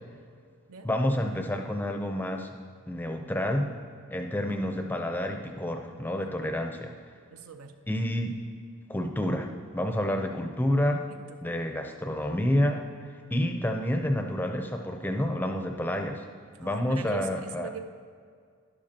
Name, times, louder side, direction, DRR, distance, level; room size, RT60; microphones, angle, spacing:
voice 1, 0.8-2.5 2.9-3.7 4.1-6.9 7.9-8.4 8.9-9.5 9.7-11.0 11.4-16.2 16.6-17.7, left 1 dB, 10° left, 4 dB, 0.5 m, -29 dB
voice 2, 6.2-6.5 7.3-7.7 11.1-11.4 16.6-17.8, right 7 dB, 80° right, 8 dB, 0.6 m, -42 dB
12.0 x 11.0 x 2.8 m, 2.1 s
head